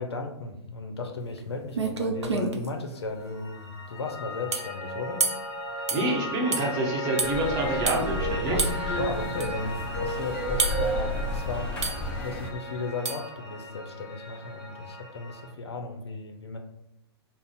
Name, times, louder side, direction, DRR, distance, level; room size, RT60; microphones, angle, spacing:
voice 1, 0.0-5.3 8.5-16.6, left 3 dB, 70° left, 4 dB, 0.5 m, -35 dB
sound 1, 1.4-1.5 1.7-2.7 4.5-4.7 5.2-5.5 5.9-6.1 6.5-6.7 7.2-7.3 7.9-8.0 8.6-8.8 9.4-9.5 10.6-10.9 11.8-12.1 13.0-13.3, right 4 dB, 80° right, 0.5 m, -28 dB
Piano, 3.1-15.5, left 1 dB, 35° left, 1.0 m, -37 dB
voice 2, 5.9-9.0, right 2 dB, 30° right, -1 dB, 0.8 m, -28 dB
sound 2, 7.2-12.5, equal, 5° left, 0.5 m, -31 dB
2.5 x 2.0 x 3.9 m, 0.84 s
figure-of-eight pair, 115°, 14 cm